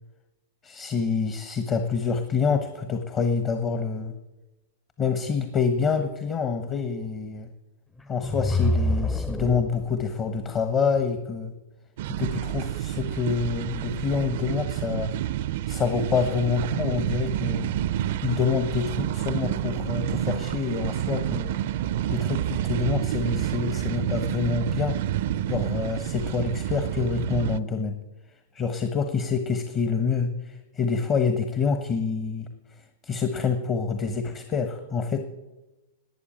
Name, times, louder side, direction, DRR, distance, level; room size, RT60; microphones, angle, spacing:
voice 1, 0.6-4.1 5.0-7.5 8.1-11.5 12.2-15.1 15.7-17.7 18.2-21.5 22.1-25.0 25.5-28.0 28.5-32.5 33.0-35.2, left 5 dB, 30° left, 7 dB, 1.2 m, -27 dB
sound 1, 8.0-10.0, left 1 dB, 10° left, 0.7 m, -26 dB
sound 2, 12.0-27.6, right 12 dB, 60° right, 0.5 m, -29 dB
13.0 x 8.8 x 8.6 m, 1.1 s
hypercardioid pair, 105°, 0 cm